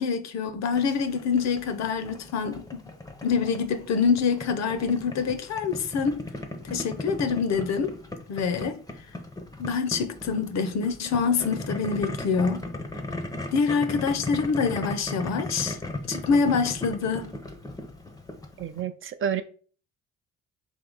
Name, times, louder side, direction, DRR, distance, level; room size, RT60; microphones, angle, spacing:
voice 1, 0.0-2.8 3.2-6.2 6.6-8.0 8.3-8.8 9.6-12.7 13.5-15.8 16.1-17.3, left 5 dB, 60° left, 0.6 m, -26 dB
Boiling, 0.7-18.8, left 2 dB, 10° left, 0.5 m, -37 dB
voice 2, 18.6-19.4, right 8 dB, 45° right, 0.4 m, -29 dB
3.5 x 2.8 x 3.9 m
cardioid pair, 90°, 30 cm